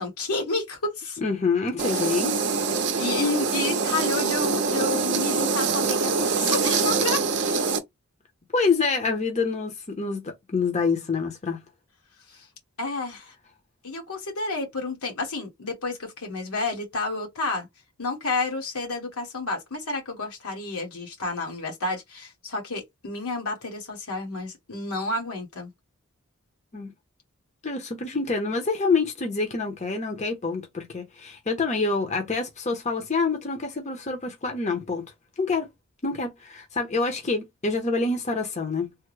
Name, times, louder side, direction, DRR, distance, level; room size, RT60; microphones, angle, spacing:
voice 1, 0.0-1.2 1.9-2.2 3.0-7.6 12.3-12.5 12.8-13.3 13.8-17.7 18.0-25.7, left 3 dB, 85° left, 1.4 m, -30 dB
voice 2, 1.2-2.3 8.5-11.6 26.7-26.9 27.6-35.1 35.4-35.7 36.0-38.9, left 4 dB, 30° left, 0.6 m, -26 dB
sound 1, 1.8-7.8, right 4 dB, 50° right, 0.5 m, -24 dB
3.4 x 2.0 x 3.1 m
head